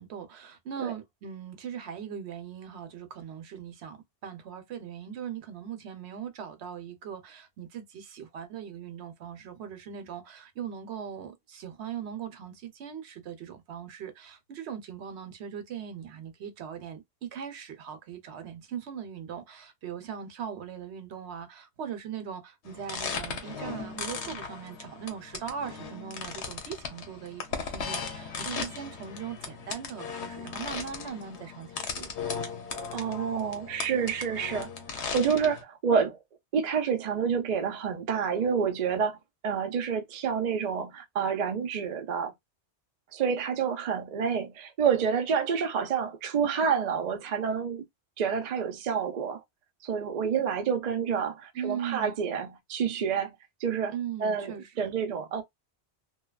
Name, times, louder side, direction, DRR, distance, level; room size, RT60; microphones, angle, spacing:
voice 1, 0.0-32.1 51.5-52.1 53.9-54.9, right 8 dB, 75° right, 0.9 m, -40 dB
sound 1, 22.7-35.6, left 5 dB, 85° left, 1.0 m, -37 dB
voice 2, 32.9-36.2 36.5-39.2 39.4-42.3 43.1-47.8 48.2-49.4 49.8-53.3 53.6-53.9 54.2-55.4, right 6 dB, 50° right, 0.5 m, -28 dB
2.7 x 2.2 x 2.3 m
omnidirectional pair, 1.1 m